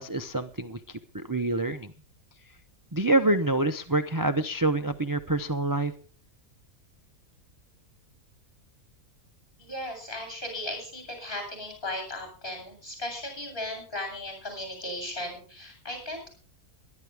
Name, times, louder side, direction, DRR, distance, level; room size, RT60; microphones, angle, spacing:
voice 1, 0.0-1.9 2.9-5.9, right 2 dB, 30° right, 9 dB, 0.3 m, -26 dB
voice 2, 9.6-16.3, left 1 dB, 35° left, 4 dB, 8.0 m, -36 dB
22.0 x 11.0 x 3.5 m, 0.38 s
omnidirectional pair, 1.6 m